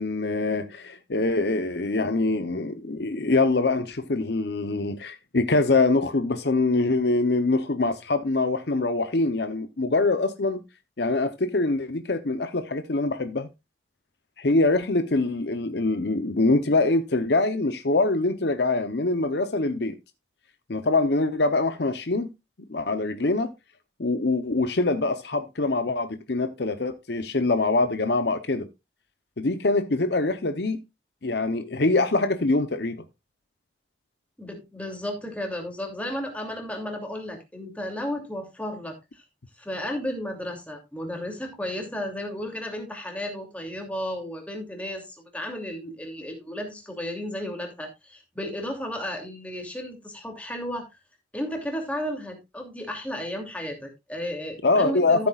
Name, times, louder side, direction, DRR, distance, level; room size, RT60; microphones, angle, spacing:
voice 1, 0.0-10.6 11.0-13.5 14.4-20.0 20.7-22.3 22.7-23.5 24.0-28.7 29.4-30.8 31.2-33.0 54.6-55.3, left 2 dB, 60° left, 0.8 m, -24 dB
voice 2, 34.4-39.2 39.6-50.9 51.3-55.3, equal, 5° left, 2.7 m, -33 dB
14.0 x 8.2 x 2.4 m
head